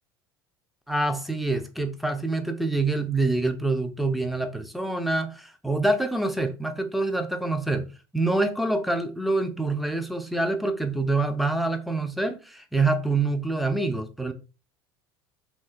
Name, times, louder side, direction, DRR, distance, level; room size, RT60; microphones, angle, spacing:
voice 1, 0.9-7.9 8.1-14.3, right 2 dB, ahead, 0.3 m, -26 dB
2.9 x 2.1 x 2.3 m
figure-of-eight pair, 65°, 13 cm